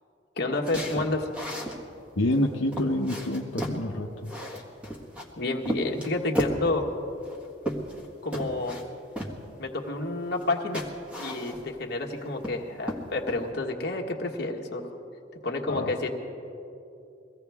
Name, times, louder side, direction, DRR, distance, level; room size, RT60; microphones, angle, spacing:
voice 1, 0.4-1.3 5.4-6.9 8.2-8.8 9.6-10.9 11.2-15.0 15.4-16.1, left 2 dB, 55° left, 0 dB, 1.5 m, -29 dB
sound 1, 0.6-1.8 2.3-2.4 2.7-3.8 4.2-5.3 5.7-6.6 7.2-8.1 8.3-8.8 9.2-9.4 10.4-10.5 10.7-11.8 12.2-12.6 12.9-13.4, equal, 5° right, 1.5 m, -33 dB
voice 2, 2.2-4.3 15.7-15.9, left 1 dB, 90° left, 0 dB, 0.9 m, -27 dB
23.0 x 16.0 x 3.6 m, 2.8 s
head